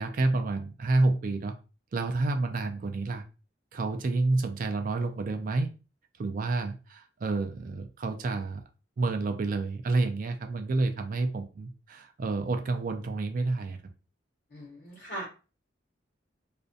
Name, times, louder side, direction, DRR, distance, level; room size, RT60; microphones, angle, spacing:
voice 1, 0.0-1.5 1.9-3.2 3.7-5.7 6.2-8.6 9.0-13.8, right 3 dB, 45° right, 6 dB, 0.3 m, -29 dB
voice 2, 14.5-15.2, right 1 dB, 55° left, -6 dB, 1.0 m, -39 dB
2.4 x 2.2 x 2.6 m, 0.33 s
head